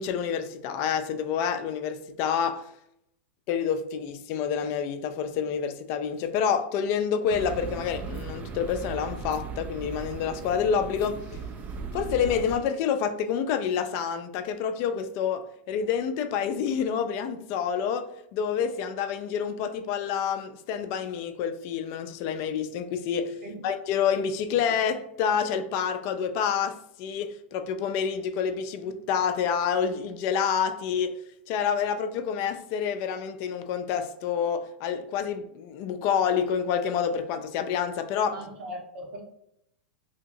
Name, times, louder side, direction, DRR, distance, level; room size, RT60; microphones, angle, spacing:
voice 1, 0.0-2.7 3.5-11.3 11.9-23.4 23.6-31.2 31.5-38.4, left 7 dB, 50° left, 0.4 m, -28 dB
sound 1, 7.3-12.6, right 4 dB, 30° right, 0.3 m, -37 dB
voice 2, 38.3-39.2, right 1 dB, 70° right, 1.1 m, -39 dB
2.8 x 2.7 x 2.6 m
hypercardioid pair, 105°, 6 cm